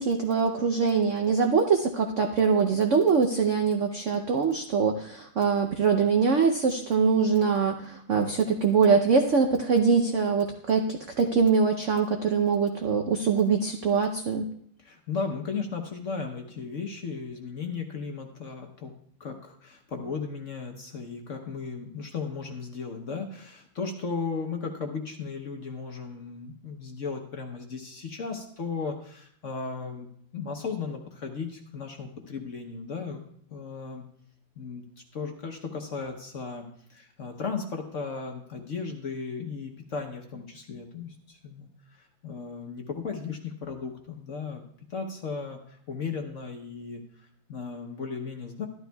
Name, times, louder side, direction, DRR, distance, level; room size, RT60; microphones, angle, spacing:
voice 1, 0.0-14.4, right 5 dB, 75° right, 4 dB, 0.7 m, -23 dB
voice 2, 14.8-18.9 19.2-30.1 30.3-33.2 33.5-34.0 34.6-34.8 35.1-44.6 44.9-48.7, left 5 dB, 50° left, 3 dB, 1.0 m, -36 dB
12.5 x 12.0 x 2.3 m, 0.65 s
omnidirectional pair, 2.1 m